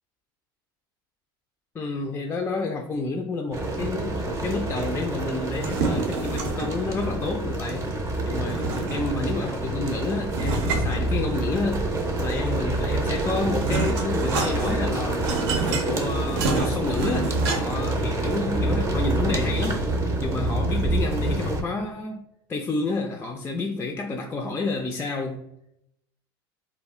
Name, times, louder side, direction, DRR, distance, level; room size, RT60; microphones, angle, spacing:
voice 1, 1.7-7.9 8.2-11.9 12.2-15.4 15.7-19.9 20.2-25.5, left 3 dB, 20° left, 0.3 m, -30 dB
sound 1, 3.5-21.6, right 2 dB, 25° right, 0.6 m, -27 dB
sound 2, 5.5-6.9 8.3-9.3 10.3-11.7 12.9-17.9, right 4 dB, 75° right, 0.6 m, -29 dB
2.3 x 2.0 x 3.5 m
hypercardioid pair, 100°, 12 cm